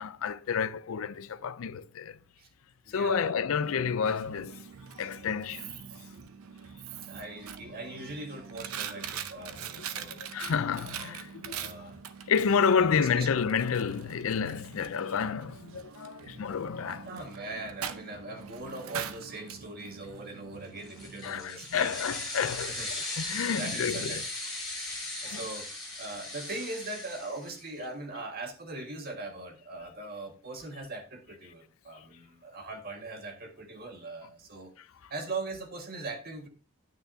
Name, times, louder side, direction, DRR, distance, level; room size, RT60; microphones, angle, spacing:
voice 1, 0.0-2.2 2.9-4.6 5.0-5.8 9.0-9.1 9.4-9.5 10.1-11.9 12.3-17.2 21.2-24.2 25.2-25.4, left 6 dB, 70° left, 0.4 m, -30 dB
voice 2, 2.9-3.3 7.1-10.2 11.0-11.1 11.5-12.0 12.8-13.3 16.8-22.0 22.7-22.9 23.3-24.2 25.2-25.7 26.0-34.7 35.1-36.5, right 2 dB, 45° right, 1.7 m, -40 dB
Coin (dropping), 3.6-21.4, right 7 dB, 85° right, 0.7 m, -43 dB
sound 1, 20.8-27.8, left 2 dB, ahead, 5.4 m, -38 dB
9.1 x 9.1 x 2.7 m
head